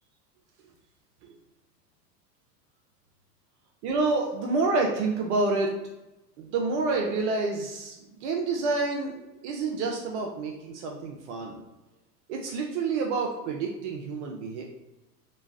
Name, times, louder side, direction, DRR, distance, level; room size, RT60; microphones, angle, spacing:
voice 1, 3.8-5.7 6.4-11.6 12.3-14.6, right 3 dB, 45° right, 0 dB, 0.5 m, -28 dB
3.1 x 2.2 x 2.3 m, 1.0 s
hypercardioid pair, 105°, 49 cm